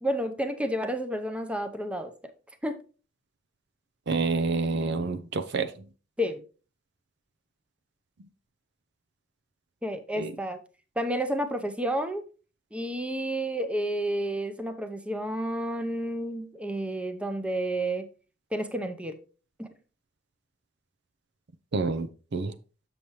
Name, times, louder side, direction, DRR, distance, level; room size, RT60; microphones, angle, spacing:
voice 1, 0.0-2.3 2.6-2.8 6.2-6.4 9.8-10.6 11.0-12.2 12.7-18.1 18.5-19.2 19.6-19.7, right 1 dB, 5° right, 0.6 m, -30 dB
voice 2, 4.1-5.7 10.2-10.3 21.7-22.5, right 3 dB, 60° right, 0.5 m, -28 dB
7.1 x 6.8 x 3.0 m
head